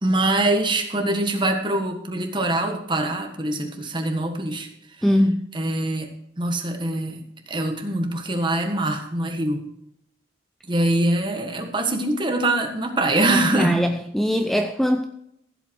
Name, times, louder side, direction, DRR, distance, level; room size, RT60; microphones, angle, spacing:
voice 1, 0.0-4.7 5.5-6.1 6.4-9.6 10.7-13.8, right 1 dB, 25° right, 5 dB, 1.5 m, -23 dB
voice 2, 5.0-5.5 13.3-15.0, equal, ahead, 6 dB, 0.5 m, -21 dB
15.0 x 8.0 x 4.6 m, 0.77 s
head